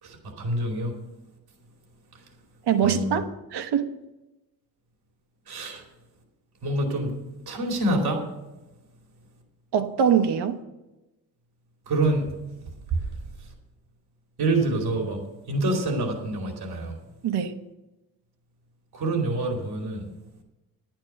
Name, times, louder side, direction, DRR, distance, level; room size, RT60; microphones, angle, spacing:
voice 1, 0.0-0.9 2.8-3.2 5.5-5.8 6.6-7.1 7.5-8.2 11.9-12.3 12.9-13.0 14.4-15.2 15.5-17.0 18.9-20.1, right 2 dB, 70° right, 2 dB, 2.7 m, -26 dB
voice 2, 2.7-3.9 9.7-10.6 17.2-17.5, right 8 dB, 90° right, 8 dB, 1.1 m, -23 dB
11.0 x 9.1 x 5.9 m, 1.0 s
wide cardioid pair, 160°, 38 cm